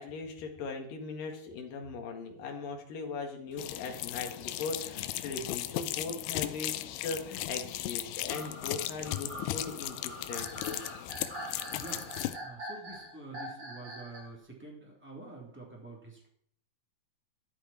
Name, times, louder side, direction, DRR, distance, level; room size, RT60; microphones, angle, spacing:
voice 1, 0.0-10.9, left 4 dB, 60° left, 3 dB, 3.3 m, -39 dB
sound 1, 3.5-5.7 6.3-7.4 8.1-14.3, right 1 dB, 25° right, 4.6 m, -45 dB
sound 2, 3.6-12.4, left 15 dB, 80° left, 2.5 m, -37 dB
voice 2, 12.4-16.3, right 3 dB, 5° right, -2 dB, 2.8 m, -47 dB
13.5 x 11.5 x 4.5 m, 0.65 s
omnidirectional pair, 4.7 m